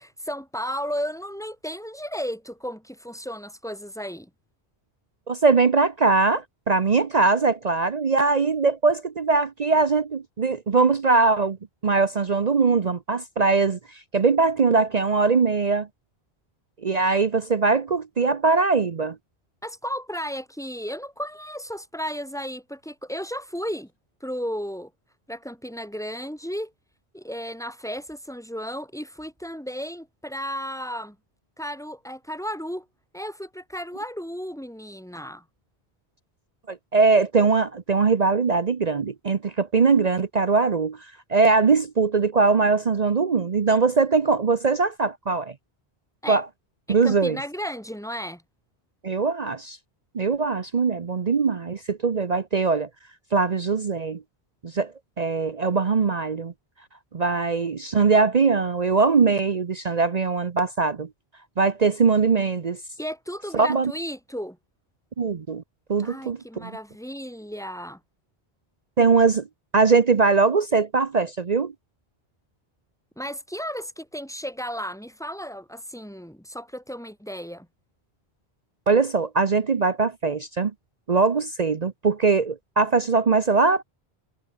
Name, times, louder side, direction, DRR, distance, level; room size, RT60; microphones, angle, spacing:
voice 1, 0.0-4.3 19.6-23.9 24.2-24.9 25.3-26.7 27.1-31.2 31.6-32.9 33.1-35.4 46.2-46.4 46.9-48.4 63.0-64.6 66.0-68.0 73.2-77.7, equal, 5° left, 8.0 m, -34 dB
voice 2, 5.3-11.6 11.8-13.8 14.1-15.9 16.8-19.2 36.7-41.0 41.3-45.5 46.3-46.5 46.9-47.4 49.0-49.8 50.1-52.9 53.3-54.2 54.6-56.5 57.1-61.1 61.6-62.8 63.5-63.9 65.2-65.6 65.9-66.7 69.0-69.5 69.7-71.7 78.9-80.7 81.1-83.8, right 4 dB, 45° right, 0.9 m, -21 dB
omnidirectional pair, 1.1 m